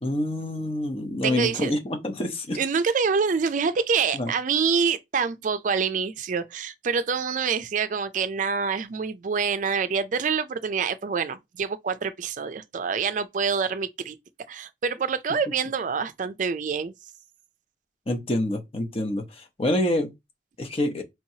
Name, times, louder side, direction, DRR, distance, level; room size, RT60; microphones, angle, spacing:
voice 1, 0.0-2.6 4.1-4.3 18.1-20.1 20.6-21.0, left 1 dB, 35° left, 0.8 m, -27 dB
voice 2, 1.2-1.7 2.6-14.2 14.5-16.9, right 5 dB, 45° right, 0.4 m, -26 dB
4.5 x 3.0 x 2.7 m
head